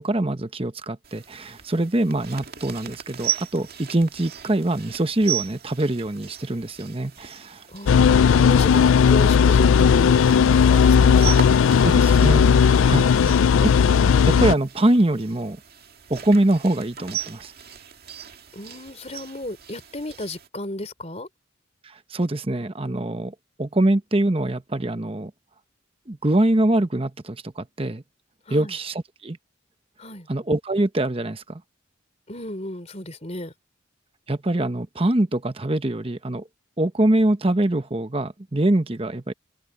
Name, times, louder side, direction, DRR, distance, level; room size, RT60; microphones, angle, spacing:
voice 1, 0.0-7.6 11.8-13.7 14.3-15.6 16.1-17.5 22.1-25.3 26.1-28.0 28.5-29.4 30.3-31.6 34.3-36.4 36.8-39.3, right 1 dB, 30° right, 0.9 m, -24 dB
sound 1, 1.0-20.5, right 9 dB, 50° right, 2.3 m, -37 dB
voice 2, 7.7-10.2 10.6-11.4 18.5-21.3 28.5-28.7 30.0-30.3 32.3-33.5, left 1 dB, 30° left, 3.6 m, -34 dB
sound 2, 7.9-14.5, left 6 dB, 80° left, 0.4 m, -16 dB
head